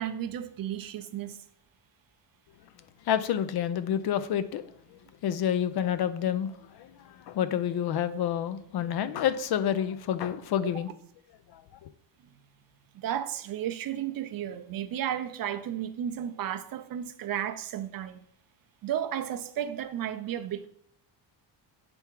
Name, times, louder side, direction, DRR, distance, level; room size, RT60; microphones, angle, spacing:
voice 1, 0.0-1.4 12.9-18.2 18.8-20.7, right 10 dB, 50° right, 0.5 m, -33 dB
voice 2, 3.1-4.6 5.2-6.9 7.3-10.9 11.8-11.9, left 9 dB, 55° left, 0.5 m, -28 dB
6.8 x 3.5 x 4.5 m
cardioid pair, 145°, 46 cm